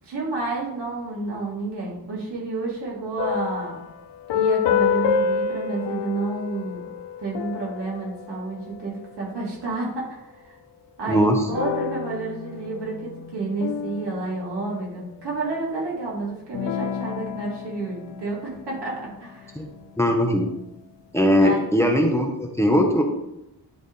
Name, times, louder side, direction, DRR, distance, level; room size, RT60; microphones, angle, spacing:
voice 1, 0.0-3.8 4.3-6.8 7.2-10.6 11.0-19.6 21.4-21.6, right 3 dB, 80° right, -4 dB, 2.6 m, -30 dB
sound 1, 3.2-9.1 11.5-15.3 16.5-19.2, left 7 dB, 85° left, 0.6 m, -29 dB
voice 2, 11.1-11.5 19.6-19.7 20.0-20.5 21.1-23.0, equal, 5° left, 2 dB, 0.7 m, -20 dB
10.0 x 3.6 x 4.0 m, 0.87 s
wide cardioid pair, 155°, 41 cm